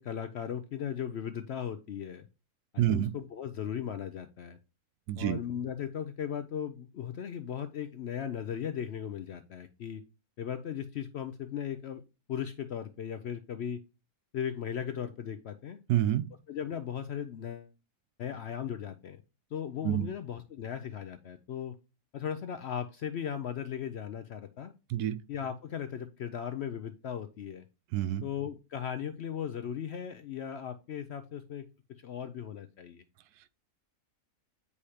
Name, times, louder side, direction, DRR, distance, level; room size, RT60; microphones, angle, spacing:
voice 1, 0.0-2.3 2.7-4.6 5.2-10.0 10.4-12.0 12.3-13.8 14.3-15.8 16.5-17.7 18.2-19.2 19.5-21.8 22.1-24.7 25.3-27.6 28.2-31.7 32.0-33.0, left 8 dB, 65° left, 0.6 m, -37 dB
voice 2, 2.8-3.1 5.1-5.4 15.9-16.3 19.8-20.1 24.9-25.2 27.9-28.2, right 12 dB, 90° right, 1.1 m, -27 dB
8.3 x 4.9 x 2.8 m
omnidirectional pair, 1.6 m